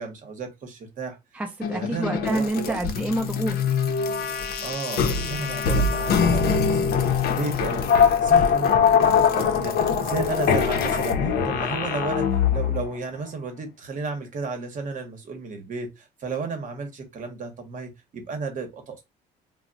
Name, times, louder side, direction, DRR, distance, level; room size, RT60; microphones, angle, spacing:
voice 1, 0.0-1.2 1.7-2.7 4.6-7.9 8.2-19.0, right 4 dB, 50° right, 0.9 m, -33 dB
voice 2, 1.3-3.6, right 1 dB, 10° right, 0.5 m, -27 dB
sound 1, 1.6-12.9, left 6 dB, 65° left, 0.6 m, -22 dB
2.2 x 2.1 x 3.8 m
cardioid pair, 110°, 17 cm